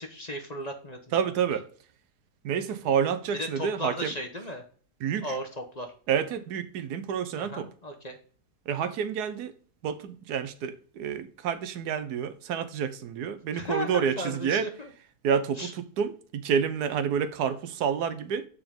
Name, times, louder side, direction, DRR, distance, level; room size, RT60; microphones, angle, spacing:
voice 1, 0.0-1.3 3.3-4.6 5.2-5.9 7.4-8.2 13.5-14.9 15.6-15.7, equal, 35° left, 0.7 m, -35 dB
voice 2, 1.1-1.7 2.4-4.1 5.0-5.3 6.1-7.7 8.7-9.5 9.8-14.7 15.2-18.5, right 7 dB, 85° right, 1.3 m, -29 dB
7.0 x 5.2 x 3.6 m
omnidirectional pair, 1.7 m